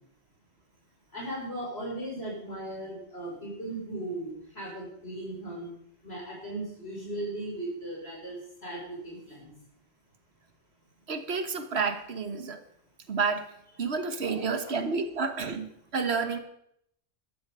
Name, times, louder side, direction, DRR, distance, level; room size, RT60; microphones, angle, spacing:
voice 1, 1.1-5.7 6.0-8.4 8.6-9.5 14.3-14.4, right 1 dB, 70° left, -2 dB, 6.0 m, -37 dB
voice 2, 11.1-12.6 13.1-13.5 13.8-16.4, right 5 dB, 70° right, 9 dB, 1.5 m, -30 dB
13.0 x 12.5 x 5.5 m, 0.72 s
omnidirectional pair, 1.1 m